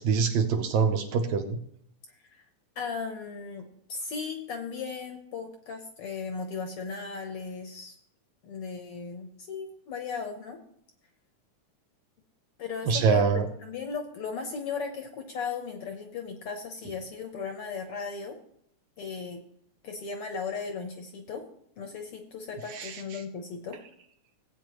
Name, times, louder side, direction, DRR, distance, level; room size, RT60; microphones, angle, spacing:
voice 1, 0.0-1.6 12.9-13.5 22.8-22.9, right 6 dB, 70° right, 5 dB, 2.1 m, -24 dB
voice 2, 2.7-7.9 8.4-10.6 12.6-13.2 13.6-18.4 19.0-19.4 19.8-21.4 21.8-23.8, left 5 dB, 60° left, 4 dB, 1.6 m, -36 dB
16.5 x 8.7 x 3.1 m, 0.69 s
omnidirectional pair, 3.5 m